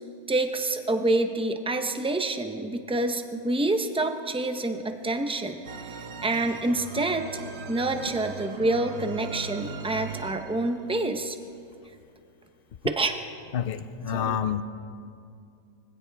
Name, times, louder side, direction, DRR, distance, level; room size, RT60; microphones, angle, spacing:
voice 1, 0.3-6.0 6.2-7.2 7.7-11.4 12.8-13.2 14.1-14.4, right 2 dB, 10° right, 6 dB, 0.3 m, -27 dB
sound 1, 5.6-10.9, right 6 dB, 50° right, 1.0 m, -39 dB
voice 2, 13.5-14.6, left 9 dB, 55° left, 11 dB, 0.6 m, -28 dB
24.5 x 16.5 x 3.4 m, 2.4 s
omnidirectional pair, 1.6 m